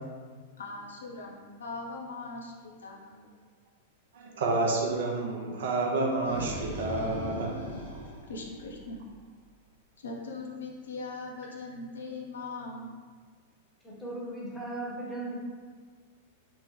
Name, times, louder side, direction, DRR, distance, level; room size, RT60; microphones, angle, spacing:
voice 1, 0.6-3.3 8.3-9.0 10.0-13.0, left 3 dB, 65° left, -1 dB, 0.4 m, -40 dB
voice 2, 4.1-7.6, right 2 dB, 55° right, 0 dB, 0.5 m, -29 dB
sound 1, 6.1-9.2, equal, 85° right, 0.9 m, -39 dB
voice 3, 13.8-15.4, right 2 dB, 10° left, -5 dB, 0.8 m, -37 dB
3.5 x 2.1 x 3.0 m, 1.5 s
figure-of-eight pair, 95°, 0 cm